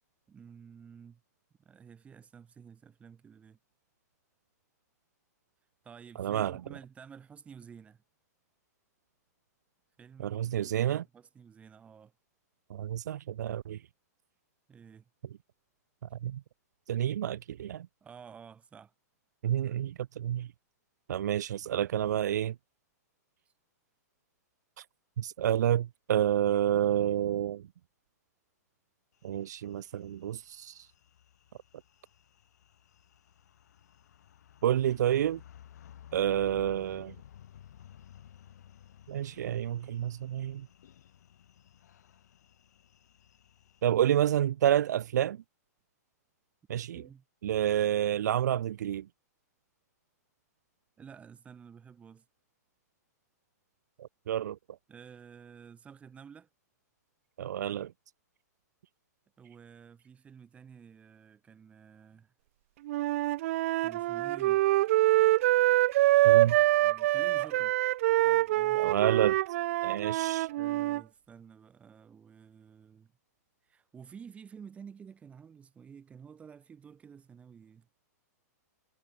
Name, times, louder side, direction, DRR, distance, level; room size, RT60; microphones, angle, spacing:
voice 1, 0.3-1.2 1.6-3.6 5.8-8.0 10.0-12.1 14.7-15.1 18.0-18.9 23.5-23.6 46.7-47.2 51.0-52.3 54.9-56.5 59.4-62.3 63.8-64.6 66.4-67.8 68.2-69.2 70.5-73.1 73.6-77.9, right 7 dB, 15° right, 3.7 m, -51 dB
voice 2, 6.2-6.5 10.2-11.0 12.7-13.8 16.2-16.4 16.9-17.9 19.4-20.5 21.1-22.5 25.2-27.6 29.2-30.9 34.6-35.4 36.1-37.1 39.1-40.7 43.8-45.4 46.7-47.0 47.4-49.0 54.0-54.6 57.4-57.9 66.2-66.6 68.8-69.4 69.8-70.5, right 11 dB, 80° right, 0.4 m, -29 dB
sound 1, 29.2-43.8, left 10 dB, 75° left, 6.2 m, -55 dB
Wind instrument woodwind instrument, 62.9-71.0, right 16 dB, 50° right, 0.8 m, -25 dB
hypercardioid pair, 155°, 9 cm